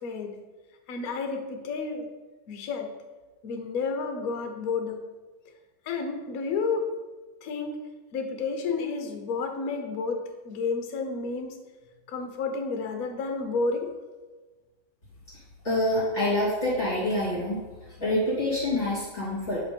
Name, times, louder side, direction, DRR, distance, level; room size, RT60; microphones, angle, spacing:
voice 1, 0.0-0.4 0.9-2.1 2.5-2.9 3.4-5.0 5.9-6.9 7.4-7.8 8.1-11.6 12.1-13.9, left 4 dB, 55° left, 5 dB, 1.0 m, -31 dB
voice 2, 15.6-17.6 18.0-19.6, left 1 dB, 25° left, -8 dB, 2.4 m, -26 dB
7.9 x 3.5 x 5.1 m, 1.3 s
omnidirectional pair, 2.3 m